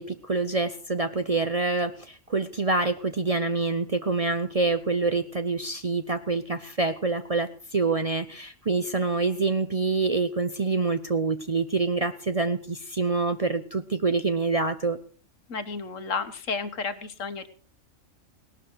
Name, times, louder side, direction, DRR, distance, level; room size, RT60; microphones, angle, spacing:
voice 1, 0.0-15.0, right 3 dB, 35° right, 10 dB, 0.7 m, -26 dB
voice 2, 15.5-17.5, left 4 dB, 70° left, 10 dB, 1.6 m, -32 dB
18.5 x 12.5 x 4.7 m, 0.39 s
omnidirectional pair, 1.4 m